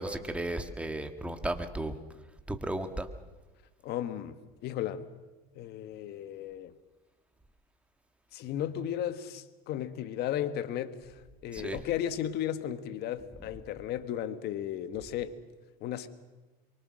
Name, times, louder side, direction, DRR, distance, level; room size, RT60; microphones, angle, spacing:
voice 1, 0.0-2.0 2.5-3.1 11.5-11.8, right 1 dB, 5° right, 1.8 m, -34 dB
voice 2, 3.8-5.0 5.5-6.7 8.3-15.4 15.8-16.1, left 10 dB, 55° left, 1.6 m, -35 dB
24.0 x 23.5 x 6.4 m
supercardioid pair, 125°, 20 cm